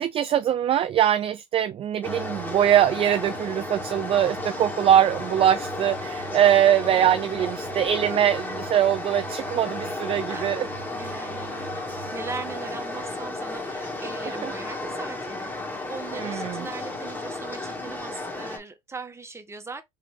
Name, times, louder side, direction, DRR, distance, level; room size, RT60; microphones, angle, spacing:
voice 1, 0.0-10.6 14.4-14.5 16.1-16.7, right 10 dB, 35° right, 0.3 m, -22 dB
sound 1, 2.0-18.6, left 2 dB, 10° left, 1.6 m, -33 dB
sound 2, 2.0-15.7 16.3-16.4, right 15 dB, 80° right, 0.8 m, -45 dB
voice 2, 6.8-7.4 10.3-10.6 10.9-15.5 15.9-19.8, right 4 dB, 15° right, 1.0 m, -39 dB
3.3 x 3.2 x 3.3 m
hypercardioid pair, 80°, 17 cm